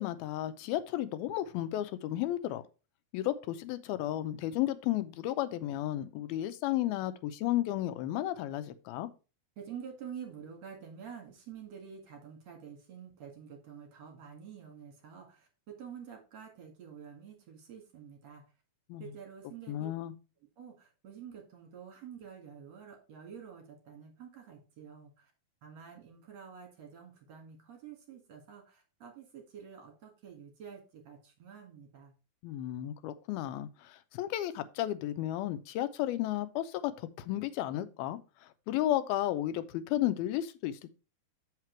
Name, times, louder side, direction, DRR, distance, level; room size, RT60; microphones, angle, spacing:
voice 1, 0.0-2.6 3.1-9.1 18.9-19.0 19.7-20.1 32.4-38.2 38.7-40.8, left 13 dB, 85° left, 2.5 m, -33 dB
voice 2, 9.6-18.4 19.0-19.9 20.6-25.3 25.6-32.1, right 7 dB, 50° right, 2.7 m, -48 dB
7.4 x 5.8 x 4.5 m
omnidirectional pair, 4.3 m